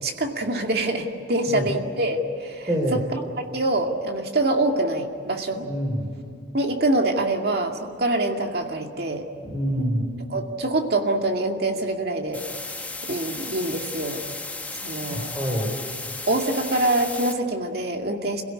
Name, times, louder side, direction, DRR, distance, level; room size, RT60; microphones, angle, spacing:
voice 1, 0.0-3.2 3.5-5.7 6.5-9.3 10.3-12.4 13.0-14.2 14.8-15.3 16.3-18.4, right 2 dB, 55° right, 3 dB, 2.3 m, -25 dB
voice 2, 2.7-3.0 5.5-6.1 9.4-10.1 15.1-15.7, equal, 15° right, -2 dB, 4.1 m, -26 dB
sound 1, 12.3-17.3, left 3 dB, 10° left, 1.0 m, -35 dB
27.5 x 17.0 x 9.8 m, 2.5 s
head